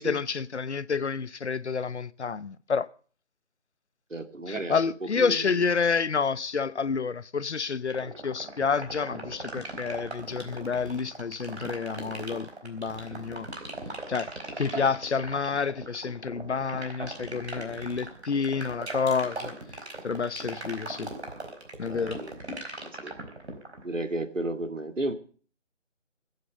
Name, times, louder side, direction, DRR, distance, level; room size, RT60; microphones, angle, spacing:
voice 1, 0.0-2.9 4.5-13.5 14.1-14.3 14.6-19.5 20.0-21.1 21.8-22.2, left 5 dB, 65° left, 0.9 m, -29 dB
voice 2, 4.1-4.8 5.2-5.6 21.9-22.3 23.0-23.1 23.8-25.1, right 2 dB, 85° right, 2.3 m, -33 dB
sound 1, 7.9-23.8, right 2 dB, 60° right, 4.5 m, -38 dB
19.5 x 8.5 x 6.7 m
figure-of-eight pair, 165°, 37 cm